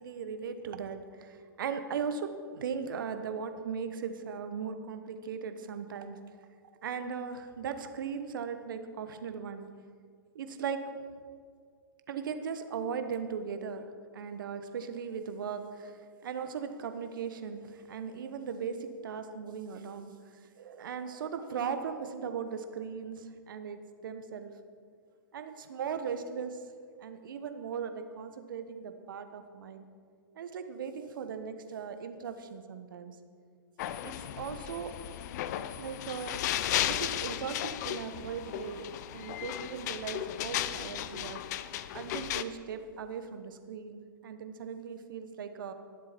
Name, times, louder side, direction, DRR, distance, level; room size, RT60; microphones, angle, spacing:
voice 1, 0.0-6.2 6.8-9.7 10.3-10.8 12.1-13.9 14.1-24.5 25.3-26.6 27.0-29.8 30.3-33.1 34.0-34.9 35.8-41.4 41.9-45.7, right 6 dB, 65° right, 8 dB, 1.2 m, -38 dB
sound 1, 33.8-42.4, left 12 dB, 50° left, 0.6 m, -35 dB
20.5 x 7.6 x 4.4 m, 2.1 s
hypercardioid pair, 115°, 12 cm